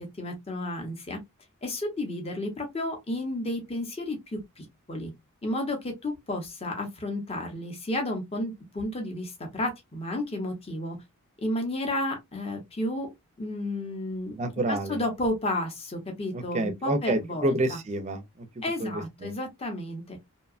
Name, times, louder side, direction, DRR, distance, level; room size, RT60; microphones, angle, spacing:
voice 1, 0.2-1.2 1.6-4.4 4.9-5.1 5.4-5.8 6.0-9.3 9.5-11.0 11.4-13.1 13.4-14.4 14.7-17.8 18.6-20.2, left 1 dB, 25° left, 0.7 m, -32 dB
voice 2, 14.4-15.0 16.3-19.3, right 1 dB, 30° right, 0.4 m, -29 dB
2.7 x 2.2 x 2.4 m
head